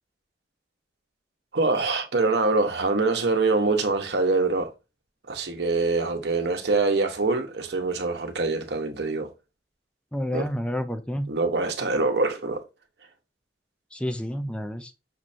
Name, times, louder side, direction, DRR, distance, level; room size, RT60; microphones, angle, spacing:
voice 1, 1.5-4.7 5.3-9.3 10.3-10.5 11.3-12.6, right 3 dB, 65° right, 1.0 m, -24 dB
voice 2, 10.1-11.3 13.9-14.9, equal, 5° left, 0.6 m, -29 dB
6.1 x 3.2 x 2.7 m
head